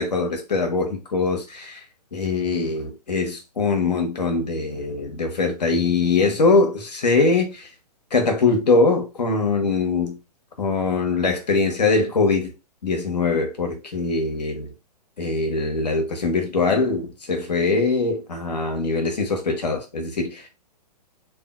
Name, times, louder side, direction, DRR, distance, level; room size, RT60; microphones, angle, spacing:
voice 1, 0.0-1.8 2.1-7.6 8.1-10.2 10.6-12.5 12.8-14.7 15.2-20.5, left 3 dB, 85° left, 0.9 m, -22 dB
2.6 x 2.3 x 2.3 m
hypercardioid pair, 120°, 21 cm